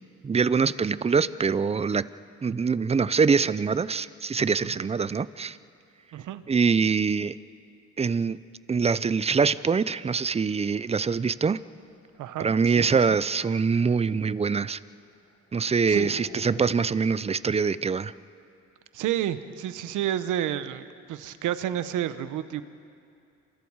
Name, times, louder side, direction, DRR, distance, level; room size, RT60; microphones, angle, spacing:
voice 1, 0.2-2.1 2.4-5.6 6.5-7.4 8.0-8.4 8.7-11.6 12.4-14.8 15.5-18.1, right 5 dB, 20° right, 17 dB, 0.5 m, -24 dB
voice 2, 6.1-6.4 12.2-12.8 15.9-16.2 18.9-22.6, right 11 dB, 85° right, 12 dB, 1.0 m, -30 dB
sound 1, 10.5-13.9 14.2-14.3 14.6-14.8 15.0-16.6, left 3 dB, 60° left, 5.3 m, -51 dB
27.5 x 26.5 x 4.8 m, 2.5 s
cardioid pair, 90°, 30 cm